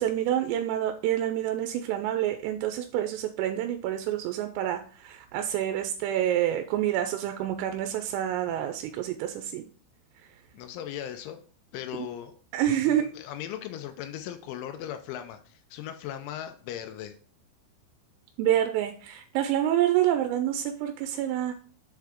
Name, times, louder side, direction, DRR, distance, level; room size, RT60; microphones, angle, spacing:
voice 1, 0.0-9.7 12.5-13.1 18.4-21.6, right 11 dB, 90° right, 6 dB, 3.2 m, -27 dB
voice 2, 10.5-11.4 11.7-12.4 12.8-17.2, left 10 dB, 80° left, 8 dB, 3.0 m, -38 dB
7.6 x 4.6 x 3.5 m, 0.43 s
omnidirectional pair, 5.7 m